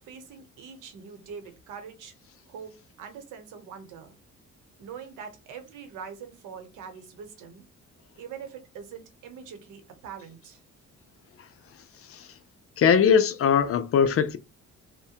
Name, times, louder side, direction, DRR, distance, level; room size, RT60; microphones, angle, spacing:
voice 1, 0.0-2.1 2.5-4.2 4.8-7.7 8.2-10.6, right 7 dB, 90° right, 0.9 m, -43 dB
voice 2, 12.8-14.4, left 7 dB, 50° left, 0.5 m, -21 dB
3.2 x 2.1 x 2.8 m
cardioid pair, 90°, 30 cm